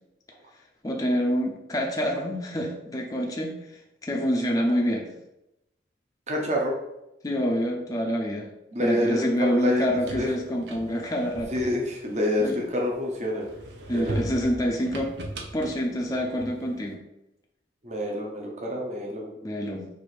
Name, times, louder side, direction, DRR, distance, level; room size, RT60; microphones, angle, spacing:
voice 1, 0.8-5.1 7.2-8.5 8.8-11.5 12.4-12.6 13.9-15.1 15.5-17.0 19.4-19.9, equal, 20° left, -1 dB, 0.5 m, -27 dB
voice 2, 6.3-6.7 8.7-9.9 10.1-10.3 11.5-13.5 13.9-14.2 17.8-19.3, left 1 dB, 40° right, -1 dB, 0.8 m, -27 dB
sound 1, 9.7-12.9 13.4-16.8, right 1 dB, 75° right, 0.7 m, -38 dB
4.7 x 2.6 x 4.3 m, 0.88 s
head